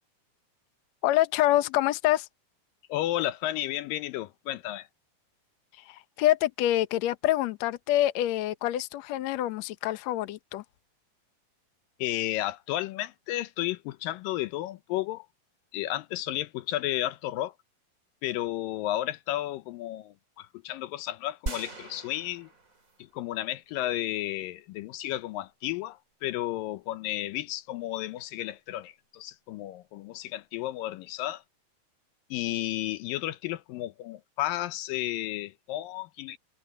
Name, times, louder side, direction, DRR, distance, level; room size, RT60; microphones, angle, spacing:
voice 1, 1.0-2.3 5.8-10.6, left 14 dB, 65° left, 1.9 m, -26 dB
voice 2, 2.9-4.9 12.0-15.3 15.7-17.5 18.2-22.5 23.0-31.4 32.3-36.4, left 15 dB, 80° left, 2.4 m, -33 dB
sound 1, 21.5-23.2 23.7-23.8, right 3 dB, 25° right, 3.4 m, -39 dB
omnidirectional pair, 4.0 m